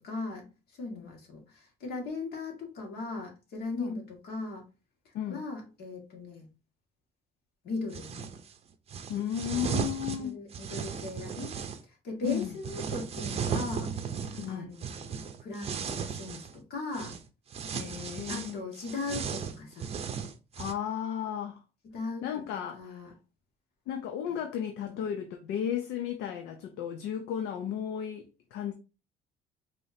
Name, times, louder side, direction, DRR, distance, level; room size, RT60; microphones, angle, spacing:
voice 1, 0.0-4.7 5.1-6.5 7.6-8.3 10.0-11.6 11.9-13.9 14.2-17.2 18.3-19.9 21.8-22.4 22.7-23.1 24.3-24.4 24.8-25.0, left 3 dB, 70° left, 1.9 m, -38 dB
voice 2, 5.1-5.5 9.1-10.4 12.2-12.5 14.4-14.7 17.7-18.6 20.6-21.6 22.2-23.0 23.9-28.7, left 9 dB, 85° left, 0.6 m, -34 dB
sound 1, 7.9-8.4 8.9-11.8 12.3-16.6 16.9-17.2 17.5-20.7, right 7 dB, 35° right, 0.6 m, -36 dB
4.8 x 2.9 x 2.7 m
cardioid pair, 110°, 17 cm